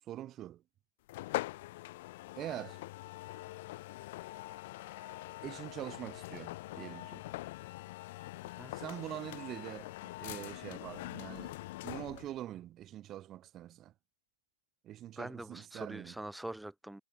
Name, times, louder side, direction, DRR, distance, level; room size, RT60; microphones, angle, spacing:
voice 1, 0.1-0.6 2.4-2.8 5.4-7.2 8.7-11.6 11.8-13.9 14.8-16.1, right 13 dB, 20° right, 4.0 m, -44 dB
sound 1, 1.1-12.4, left 18 dB, 35° left, 0.9 m, -43 dB
voice 2, 15.2-17.0, right 1 dB, ahead, 4.9 m, -43 dB
figure-of-eight pair, 125°, 0 cm